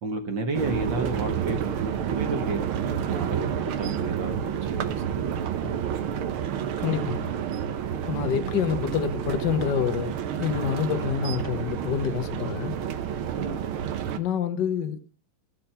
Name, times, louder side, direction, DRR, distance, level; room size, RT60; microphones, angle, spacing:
voice 1, 0.0-2.6 2.9-5.7 8.1-8.4 13.3-13.7, right 2 dB, 50° right, 1.6 m, -32 dB
sound 1, 0.5-14.2, right 8 dB, 90° right, 1.1 m, -29 dB
voice 2, 6.8-7.3 8.1-12.7 14.2-15.0, left 8 dB, 75° left, 1.0 m, -27 dB
15.0 x 7.5 x 5.6 m
omnidirectional pair, 3.7 m